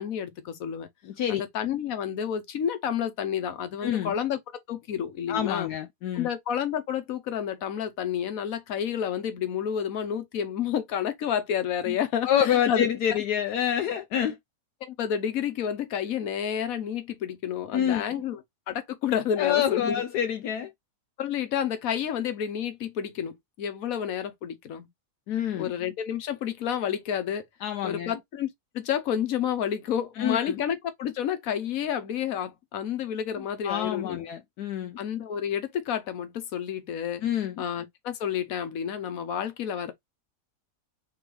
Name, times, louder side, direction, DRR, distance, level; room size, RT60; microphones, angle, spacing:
voice 1, 0.0-0.9 1.3-4.4 4.7-5.7 6.1-12.9 14.8-18.4 18.7-20.0 21.2-24.9 25.6-27.4 27.8-28.5 28.7-34.2 35.0-37.2 37.6-39.9, left 9 dB, 60° left, 1.3 m, -30 dB
voice 2, 1.0-1.4 3.8-4.2 5.3-6.3 11.9-12.0 12.2-14.4 17.7-18.2 19.4-20.7 25.3-25.7 27.6-28.1 30.2-30.6 33.6-35.0 37.2-37.6, left 9 dB, 75° left, 1.1 m, -27 dB
3.9 x 3.5 x 3.2 m
omnidirectional pair, 1.7 m